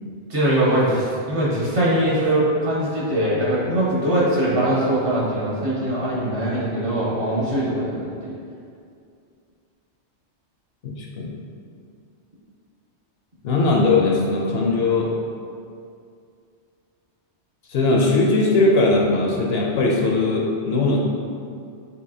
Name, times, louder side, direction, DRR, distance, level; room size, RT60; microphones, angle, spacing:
voice 1, 0.3-8.3, right 1 dB, 55° right, -7 dB, 1.3 m, -22 dB
voice 2, 10.8-11.3 13.4-15.1 17.7-21.0, left 3 dB, 65° left, -1 dB, 0.8 m, -19 dB
6.2 x 2.8 x 2.7 m, 2.4 s
omnidirectional pair, 1.2 m